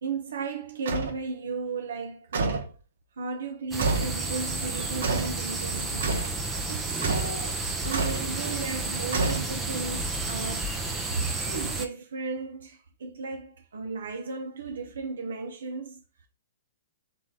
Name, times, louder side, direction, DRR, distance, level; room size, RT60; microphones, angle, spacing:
voice 1, 0.0-2.8 3.2-6.4 6.7-10.8 11.1-16.0, right 4 dB, 85° right, 0.7 m, -35 dB
sound 1, 0.9-1.2 2.3-2.7 3.8-4.2 5.0-5.4 6.0-6.4 7.0-7.4 7.9-8.3 9.1-9.8, right 3 dB, 60° right, 1.2 m, -28 dB
sound 2, 3.7-11.9, right 3 dB, 5° right, 0.4 m, -31 dB
4.3 x 3.1 x 3.8 m
hypercardioid pair, 175°, 0 cm